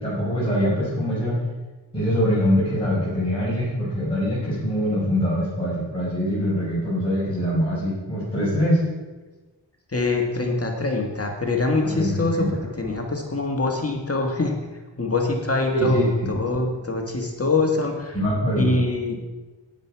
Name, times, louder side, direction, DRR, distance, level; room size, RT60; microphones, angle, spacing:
voice 1, 0.0-1.4 1.9-8.8 11.9-12.5 15.7-16.3 18.1-18.7, equal, 10° left, -9 dB, 4.5 m, -23 dB
voice 2, 9.9-12.5 12.8-14.6 15.0-16.0 16.3-18.2 18.6-19.4, left 3 dB, 30° left, 1 dB, 1.6 m, -24 dB
12.0 x 9.8 x 4.6 m, 1.2 s
wide cardioid pair, 90°, 44 cm